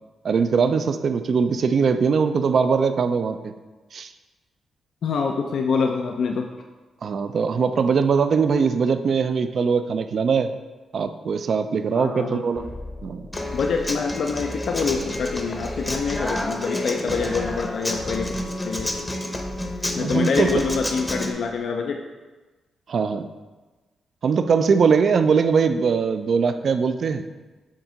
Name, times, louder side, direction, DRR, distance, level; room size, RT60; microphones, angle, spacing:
voice 1, 0.2-3.5 3.9-4.1 7.0-10.5 10.9-12.7 13.0-13.3 20.0-20.5 22.9-23.3 24.2-27.2, right 5 dB, 60° right, 10 dB, 0.4 m, -21 dB
voice 2, 5.0-6.5 11.9-12.4 13.5-18.3 18.6-18.9 19.9-22.0, left 5 dB, 70° left, 3 dB, 0.4 m, -25 dB
sound 1, 12.6-21.6, left 2 dB, 45° left, 0.9 m, -38 dB
Human voice / Acoustic guitar, 13.3-21.3, left 1 dB, 15° left, 0.7 m, -30 dB
7.3 x 2.7 x 5.0 m, 1.2 s
cardioid pair, 65°, 0 cm